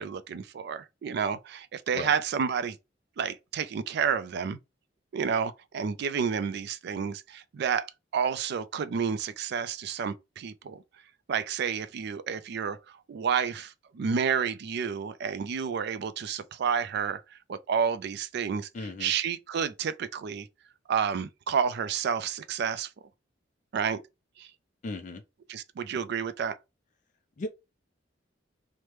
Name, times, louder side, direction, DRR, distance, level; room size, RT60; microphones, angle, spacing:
voice 1, 0.0-2.8 3.2-4.6 5.1-10.8 11.3-18.7 19.0-20.5 20.9-22.9 23.7-24.0 24.4-24.5 25.5-26.6, right 6 dB, 60° right, 0.3 m, -30 dB
voice 2, 18.7-19.1 24.8-25.2 27.4-27.5, left 2 dB, 40° left, 0.4 m, -36 dB
3.0 x 2.1 x 3.2 m
head